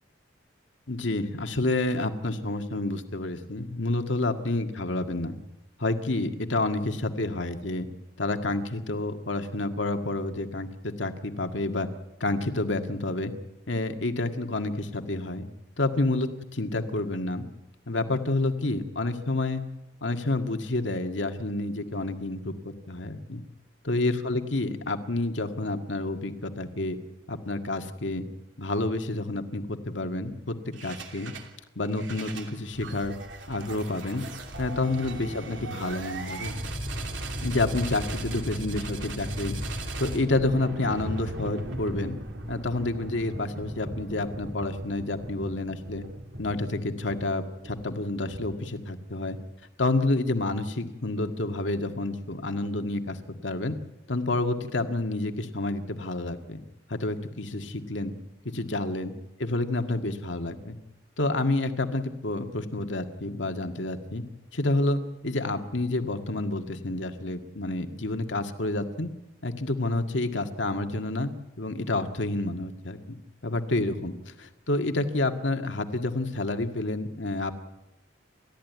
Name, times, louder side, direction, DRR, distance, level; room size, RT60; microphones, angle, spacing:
voice 1, 0.9-5.4 5.8-7.9 8.2-11.9 12.2-13.3 13.7-15.5 15.8-17.4 17.9-19.6 20.0-23.4 23.8-27.0 27.3-28.3 28.6-30.6 30.8-31.3 31.8-33.2 33.5-34.2 34.6-36.5 37.4-39.6 40.0-42.2 42.5-46.0 46.4-49.4 49.8-53.2 53.4-53.8 54.1-56.6 56.9-58.1 58.5-59.1 59.4-60.8 61.2-64.2 64.5-69.1 69.4-71.3 71.6-73.2 73.4-77.5, left 2 dB, 85° left, 6 dB, 1.9 m, -29 dB
sound 1, 30.7-31.5 31.8-48.8, right 1 dB, 90° right, 3.1 m, -37 dB
30.0 x 13.5 x 9.4 m, 0.97 s
head